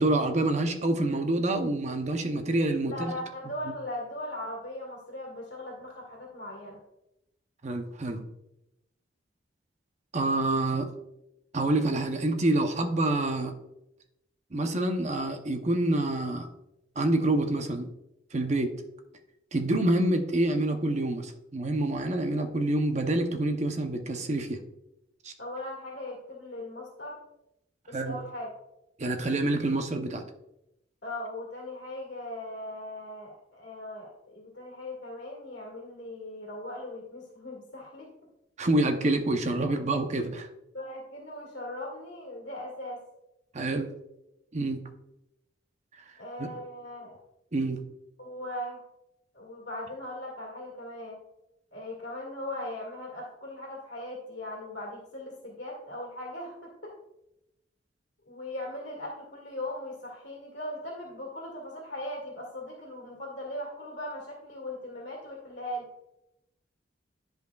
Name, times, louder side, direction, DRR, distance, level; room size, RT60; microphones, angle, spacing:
voice 1, 0.0-3.1 7.6-8.2 10.1-10.9 11.5-13.5 14.5-16.5 17.0-17.9 18.3-18.7 19.5-24.6 25.2-25.3 27.9-28.2 29.0-30.2 38.6-40.5 43.5-43.9 44.5-44.8 46.4-46.5 47.5-47.8, right 2 dB, 40° right, 6 dB, 0.7 m, -27 dB
voice 2, 2.9-6.8 25.4-27.2 27.9-28.5 31.0-38.1 40.7-43.0 46.2-47.2 48.2-48.8 49.3-51.2 51.7-56.9 58.3-65.9, left 1 dB, 70° left, -3 dB, 1.8 m, -39 dB
10.5 x 5.2 x 2.3 m, 0.87 s
head